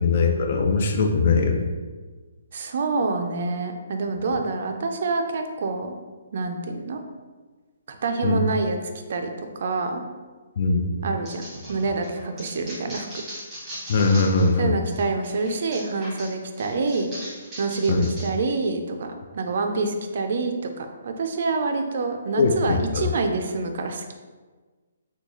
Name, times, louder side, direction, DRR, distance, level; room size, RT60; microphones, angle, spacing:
voice 1, 0.0-1.6 8.2-8.4 10.6-11.0 13.9-14.7 17.9-18.1 22.4-23.1, left 4 dB, 45° left, 3 dB, 0.3 m, -21 dB
voice 2, 2.5-5.9 6.3-7.0 7.9-8.8 9.1-10.0 11.0-13.1 14.6-17.1 17.6-24.1, right 3 dB, 50° right, 5 dB, 0.4 m, -27 dB
sound 1, 11.3-14.6 14.9-18.3, equal, 5° right, 1.2 m, -39 dB
3.7 x 2.2 x 3.0 m, 1.4 s
hypercardioid pair, 165°, 0 cm